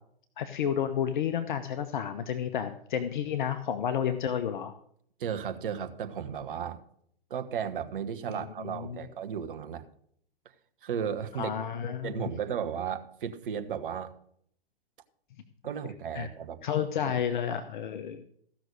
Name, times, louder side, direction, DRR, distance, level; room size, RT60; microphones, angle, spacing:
voice 1, 0.4-4.7 8.6-9.1 11.4-12.3 16.1-16.3 16.6-18.3, left 8 dB, 55° left, 10 dB, 0.9 m, -31 dB
voice 2, 5.2-6.8 7.3-9.8 10.8-11.6 12.0-14.1 15.6-16.6 17.0-17.1 17.5-17.6, right 8 dB, 60° right, 8 dB, 1.3 m, -34 dB
15.0 x 6.2 x 6.6 m, 0.66 s
figure-of-eight pair, 120°, 30 cm